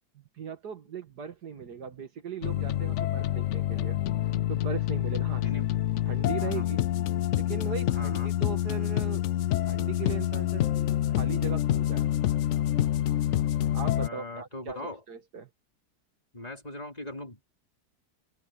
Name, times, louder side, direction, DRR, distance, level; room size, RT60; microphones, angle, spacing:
voice 1, 0.4-4.0 4.5-5.5 6.1-6.9 7.4-10.7 11.1-12.1 13.6-15.5, right 7 dB, 70° right, 2.2 m, -39 dB
sound 1, 2.4-14.1, left 12 dB, 75° left, 0.6 m, -27 dB
voice 2, 5.4-5.8 6.4-6.6 7.9-8.3 14.0-15.0 16.3-17.5, left 1 dB, 20° left, 3.7 m, -40 dB
open air
omnidirectional pair, 1.8 m